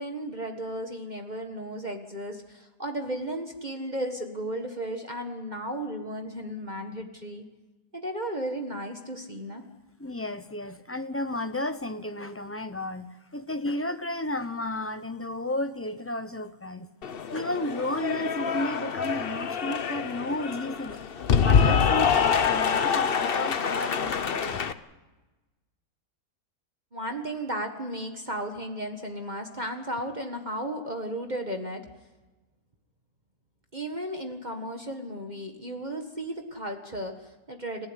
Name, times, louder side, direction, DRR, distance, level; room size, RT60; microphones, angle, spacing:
voice 1, 0.0-7.4 7.9-9.6 26.9-31.9 33.7-37.9, right 1 dB, 25° right, 4 dB, 1.7 m, -34 dB
voice 2, 10.0-16.9 17.3-21.0 21.4-24.6, left 1 dB, 15° left, 10 dB, 0.5 m, -33 dB
Cheering / Applause, 17.0-24.7, left 7 dB, 45° left, 0.9 m, -26 dB
29.5 x 15.0 x 9.9 m, 1.2 s
omnidirectional pair, 1.8 m